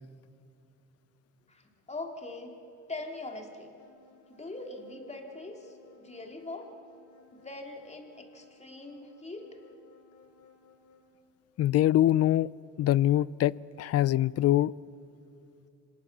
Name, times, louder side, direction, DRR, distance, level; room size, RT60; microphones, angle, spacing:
voice 1, 1.5-2.5 2.9-3.7 4.3-6.7 7.3-9.5, left 2 dB, 20° left, 2.9 m, -42 dB
sound 1, 3.8-11.3, left 4 dB, 75° left, 3.3 m, -61 dB
voice 2, 11.6-12.5 12.8-14.7, left 13 dB, 55° left, 0.4 m, -24 dB
25.0 x 19.0 x 7.3 m
cardioid pair, 90°, 30 cm